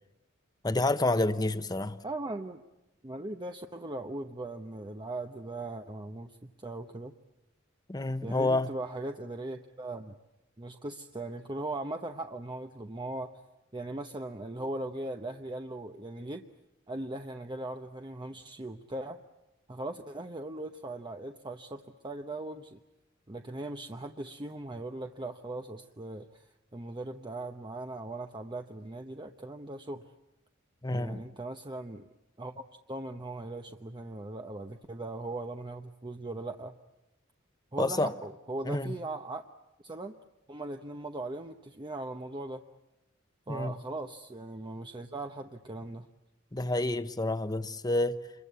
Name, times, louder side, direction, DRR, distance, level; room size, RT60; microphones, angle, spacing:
voice 1, 0.6-2.0 7.9-8.7 30.8-31.2 37.8-38.1 38.6-38.9 43.5-43.7 46.5-48.2, left 2 dB, 20° left, 1.0 m, -28 dB
voice 2, 2.0-2.6 3.0-6.3 6.6-7.1 8.2-10.2 10.6-13.3 13.7-16.4 16.9-19.2 19.7-22.8 23.3-26.5 26.7-30.0 30.9-32.1 32.4-32.6 32.9-36.7 37.7-39.5 39.8-40.1 40.5-42.6 43.5-46.1, right 2 dB, 25° right, 0.9 m, -39 dB
27.0 x 22.5 x 8.3 m
head